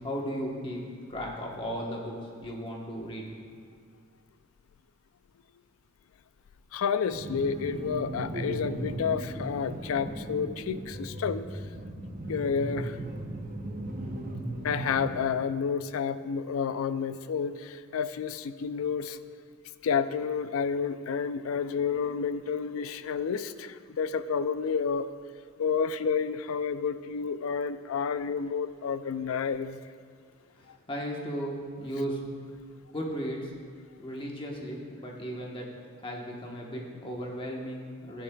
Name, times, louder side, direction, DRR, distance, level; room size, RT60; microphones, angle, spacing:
voice 1, 0.0-3.3 30.6-32.2 32.9-33.5 34.0-35.7 36.0-38.2, equal, 25° left, -1 dB, 1.1 m, -36 dB
voice 2, 6.7-11.6 12.3-13.0 14.6-19.2 19.8-25.1 25.6-29.8 30.7-30.8, left 6 dB, 85° left, 13 dB, 0.4 m, -30 dB
sound 1, 7.1-15.2, right 1 dB, 40° right, 0.8 m, -37 dB
12.0 x 9.8 x 2.3 m, 2.1 s
head